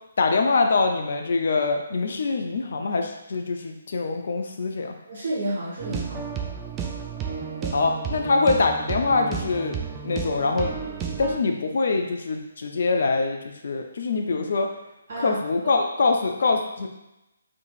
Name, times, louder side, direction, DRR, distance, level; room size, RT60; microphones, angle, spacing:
voice 1, 0.2-4.9 7.7-9.8 10.0-10.7 11.2-14.7 15.2-16.9, left 3 dB, 55° left, 3 dB, 0.5 m, -24 dB
voice 2, 5.1-6.3 7.6-7.8 15.1-15.7, right 1 dB, 50° right, -7 dB, 1.2 m, -31 dB
sound 1, 5.8-11.4, right 7 dB, 15° right, 0.4 m, -32 dB
3.8 x 3.7 x 2.4 m, 0.92 s
figure-of-eight pair, 140°, 0 cm